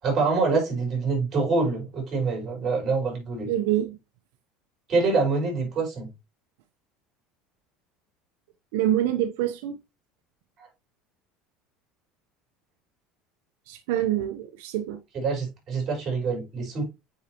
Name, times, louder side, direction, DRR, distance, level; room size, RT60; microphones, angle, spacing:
voice 1, 0.0-3.5 4.9-6.1 15.1-16.8, right 4 dB, 30° right, 4.8 m, -25 dB
voice 2, 3.5-4.0 8.7-9.8 13.7-15.0, right 12 dB, 80° right, 0.8 m, -26 dB
8.8 x 4.7 x 2.9 m
cardioid pair, 155°, 0 cm